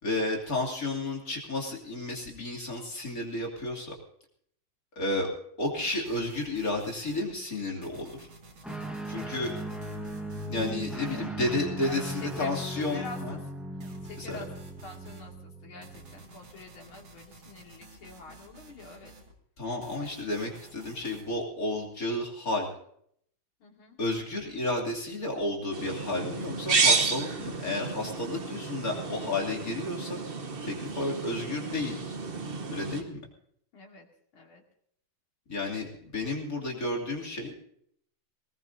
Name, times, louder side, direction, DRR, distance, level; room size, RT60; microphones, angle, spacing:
voice 1, 0.0-3.9 5.0-5.3 5.6-8.3 9.1-9.5 10.5-13.4 14.2-14.4 19.6-22.7 24.0-30.2 30.6-32.0 32.7-33.2 35.5-37.6, left 2 dB, 40° left, -1 dB, 3.2 m, -32 dB
sound 1, 5.8-7.3 7.8-11.3 11.8-13.3 13.8-15.3 15.8-19.3 19.8-21.3, right 2 dB, 75° right, 2.9 m, -52 dB
Guitar, 8.6-16.3, equal, ahead, 1.0 m, -38 dB
voice 2, 11.8-13.6 14.0-19.1 23.6-24.0 33.7-34.1 34.3-34.6, left 3 dB, 75° left, 0 dB, 3.2 m, -46 dB
sound 2, 25.7-33.0, right 4 dB, 40° right, 0.9 m, -31 dB
20.5 x 19.0 x 2.7 m, 0.67 s
omnidirectional pair, 2.3 m